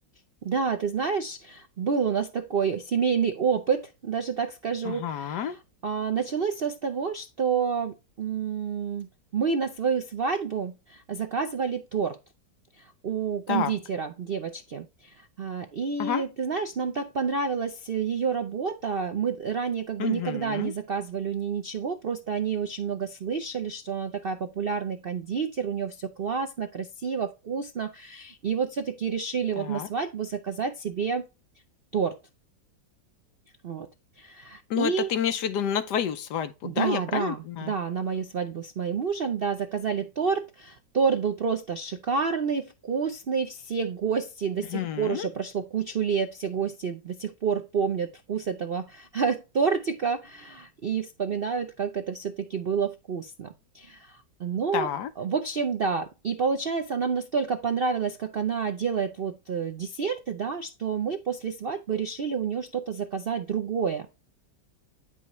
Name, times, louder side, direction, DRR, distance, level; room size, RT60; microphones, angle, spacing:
voice 1, 0.4-5.6 5.8-12.2 13.0-31.3 31.9-32.2 33.6-33.9 34.2-35.1 36.6-54.9 55.2-64.1, right 6 dB, 70° right, 0.5 m, -29 dB
voice 2, 4.8-5.6 13.5-13.7 16.0-16.2 20.0-20.7 29.6-29.9 34.7-37.7 44.7-45.3 54.7-55.1, left 9 dB, 70° left, 1.2 m, -29 dB
9.4 x 5.6 x 3.1 m
omnidirectional pair, 2.0 m